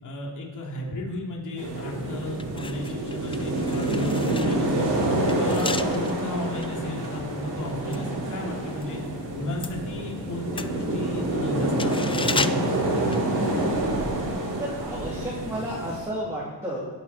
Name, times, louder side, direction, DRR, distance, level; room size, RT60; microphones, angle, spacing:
voice 1, 0.0-4.9 5.4-9.0 9.3-13.6, left 1 dB, 45° left, -2 dB, 2.9 m, -34 dB
sound 1, 1.6-16.0, right 1 dB, 90° right, 4.5 m, -27 dB
sound 2, 2.3-8.9 9.2-13.9 14.1-14.3, left 4 dB, 15° left, 0.3 m, -35 dB
voice 2, 14.6-16.8, right 1 dB, 5° right, -7 dB, 3.1 m, -32 dB
20.0 x 8.9 x 4.3 m, 1.3 s
cardioid pair, 130°, 42 cm